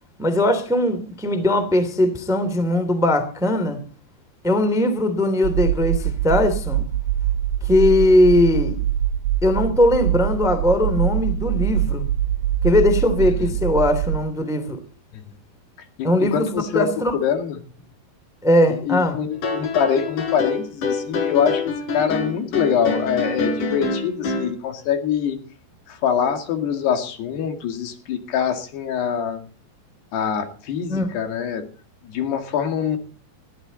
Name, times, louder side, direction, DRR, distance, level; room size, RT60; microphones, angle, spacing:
voice 1, 0.2-3.8 4.4-6.9 7.6-8.8 9.4-12.1 12.6-14.8 16.0-16.4 16.7-17.1 18.4-19.1 30.9-31.1, left 1 dB, ahead, 9 dB, 1.8 m, -19 dB
sound 1, 5.4-14.2, right 11 dB, 65° right, 2.7 m, -23 dB
voice 2, 13.2-13.5 16.0-16.9 17.2-17.6 18.8-25.4 25.9-29.4 30.1-31.7 32.0-33.0, left 8 dB, 75° left, 6 dB, 4.2 m, -24 dB
sound 2, 19.3-24.5, left 3 dB, 50° left, 4.8 m, -26 dB
21.0 x 14.5 x 4.1 m, 0.38 s
omnidirectional pair, 4.8 m